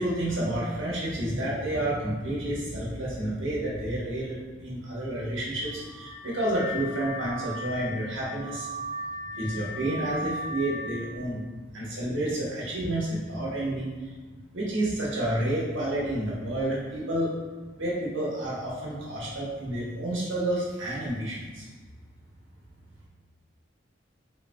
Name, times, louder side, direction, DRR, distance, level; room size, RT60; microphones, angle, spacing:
voice 1, 0.0-8.7 9.3-11.4 11.7-14.1 14.5-17.3 17.8-21.7, right 1 dB, 85° right, -6 dB, 1.1 m, -30 dB
Car / Alarm, 5.6-11.1, equal, 45° left, 0.5 m, -37 dB
3.5 x 3.2 x 2.2 m, 1.4 s
head